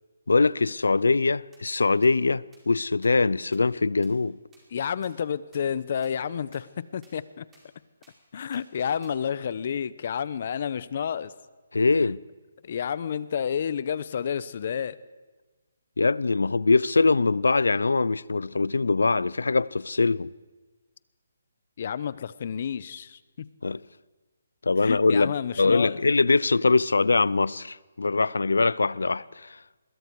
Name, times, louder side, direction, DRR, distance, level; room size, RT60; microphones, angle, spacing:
voice 1, 0.3-4.4 11.7-12.2 16.0-20.3 23.6-23.8 24.6-29.6, left 3 dB, 85° left, 0.5 m, -23 dB
sound 1, 1.5-1.6 2.0-2.1 2.5-2.6 3.0-3.1 3.5-3.6 4.0-4.1 4.5-4.6 5.0-5.1 5.5-5.6 6.0-6.1 6.5-6.6 7.0-7.1 7.5-7.6 8.0-8.1 8.5-8.6 9.0-9.1, right 3 dB, 10° right, 4.7 m, -58 dB
voice 2, 4.7-7.4 8.3-11.3 12.6-15.0 21.8-23.5 24.8-26.0, left 8 dB, 50° left, 0.9 m, -30 dB
26.0 x 21.5 x 4.8 m
hypercardioid pair, 155°, 0 cm